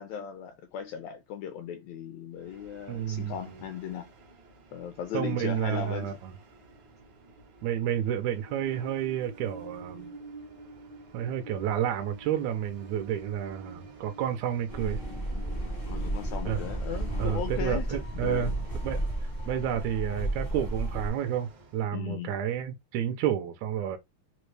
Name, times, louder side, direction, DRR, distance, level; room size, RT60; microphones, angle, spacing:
voice 1, 0.0-4.1 4.7-6.2 15.9-18.6 21.9-22.3, left 8 dB, 80° left, 1.6 m, -37 dB
Train, 2.4-21.9, right 3 dB, 65° right, 1.1 m, -49 dB
voice 2, 2.9-3.3 5.1-6.1 7.6-10.1 11.1-15.0 16.5-16.6 17.2-18.5 18.8-24.0, right 10 dB, 80° right, 1.8 m, -30 dB
sound 1, 14.7-21.1, right 1 dB, 50° left, 0.6 m, -33 dB
5.1 x 2.1 x 3.1 m
omnidirectional pair, 3.5 m